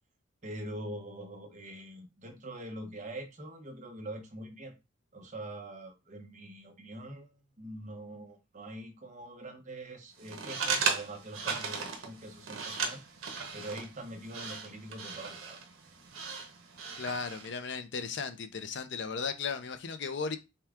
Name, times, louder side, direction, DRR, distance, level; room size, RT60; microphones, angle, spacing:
voice 1, 0.4-4.7 5.1-13.0 13.5-15.6, right 1 dB, 40° right, 0.9 m, -44 dB
sound 1, 10.2-17.5, right 5 dB, 85° right, 0.9 m, -37 dB
voice 2, 17.0-20.4, left 5 dB, 60° left, 0.5 m, -36 dB
5.6 x 2.3 x 3.5 m
head